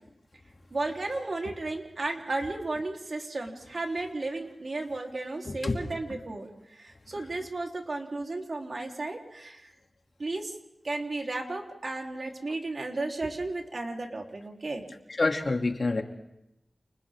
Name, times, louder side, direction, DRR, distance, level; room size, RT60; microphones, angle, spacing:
voice 1, 0.7-9.7 10.2-10.5 10.8-14.8, right 2 dB, 55° right, 1 dB, 3.7 m, -34 dB
voice 2, 5.4-5.9 7.2-7.3 15.1-16.0, left 3 dB, 55° left, 3 dB, 2.7 m, -28 dB
29.5 x 29.5 x 3.7 m, 0.86 s
cardioid pair, 50°, 0 cm